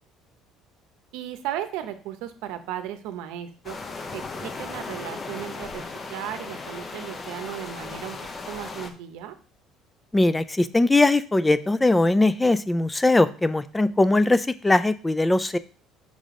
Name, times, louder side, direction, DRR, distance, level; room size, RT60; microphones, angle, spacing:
voice 1, 1.1-3.8 4.1-5.8 6.1-8.2 8.5-9.4, right 11 dB, 90° right, 9 dB, 0.7 m, -35 dB
sound 1, 3.6-8.9, left 3 dB, 30° left, 0.8 m, -36 dB
voice 2, 10.1-15.6, left 2 dB, 10° left, 14 dB, 0.4 m, -20 dB
5.3 x 5.0 x 3.7 m, 0.39 s
cardioid pair, 125°, 0 cm